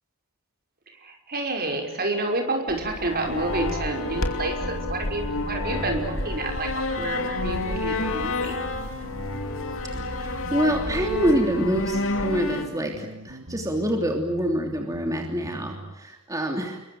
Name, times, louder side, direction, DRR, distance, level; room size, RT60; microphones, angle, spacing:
voice 1, 1.0-6.7 7.0-8.6, right 2 dB, 45° right, 3 dB, 5.7 m, -29 dB
sound 1, 2.7-12.6, left 2 dB, 60° left, 2.9 m, -29 dB
sound 2, 4.6-16.0, right 1 dB, 70° right, 2.6 m, -41 dB
voice 2, 10.1-16.8, equal, 15° right, 2 dB, 3.2 m, -26 dB
28.5 x 23.0 x 7.8 m, 0.91 s
head